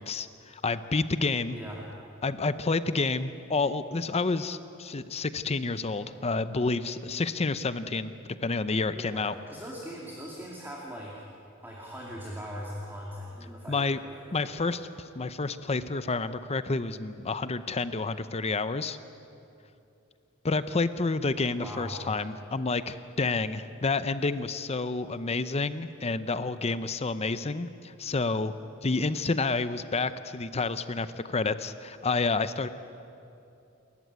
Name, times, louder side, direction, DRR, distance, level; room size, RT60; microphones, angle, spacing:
voice 1, 0.0-1.6 2.2-8.1 8.4-9.3 13.7-14.0 14.3-19.0 20.4-28.5 28.8-32.7, left 3 dB, 30° left, 13 dB, 0.6 m, -29 dB
voice 2, 1.5-1.8 8.9-11.1 11.6-14.7 21.6-22.0, equal, 10° right, -3 dB, 2.6 m, -40 dB
28.5 x 14.5 x 9.5 m, 2.7 s
head